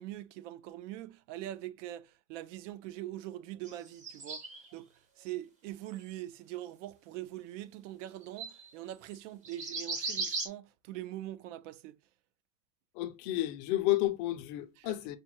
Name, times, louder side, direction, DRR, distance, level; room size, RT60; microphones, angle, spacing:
voice 1, 0.0-12.0 14.8-15.0, right 14 dB, 70° right, 0.5 m, -43 dB
sound 1, 3.6-4.7 5.9-6.1 6.7-6.8 8.1-8.2 8.4-8.7 9.1-9.2 9.4-10.5, right 3 dB, 20° right, 0.6 m, -37 dB
voice 2, 12.9-15.2, left 15 dB, 45° left, 0.4 m, -31 dB
4.9 x 2.1 x 2.9 m
supercardioid pair, 160°, 38 cm